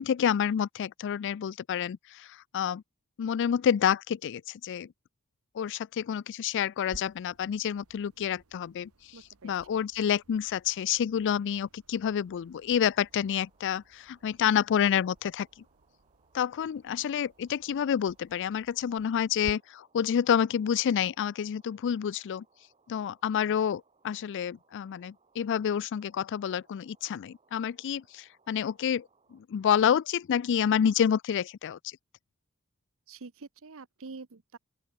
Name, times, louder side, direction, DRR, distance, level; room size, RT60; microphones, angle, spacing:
voice 1, 0.0-2.8 3.2-4.9 5.5-8.9 9.4-15.5 16.3-22.4 22.9-31.9, left 8 dB, 55° left, 0.3 m, -28 dB
sound 1, 6.9-19.5, right 2 dB, 80° right, 1.5 m, -56 dB
voice 2, 9.1-9.5 33.1-34.6, right 4 dB, 65° right, 0.9 m, -46 dB
sound 2, 12.6-29.4, right 4 dB, 30° right, 3.8 m, -69 dB
open air
head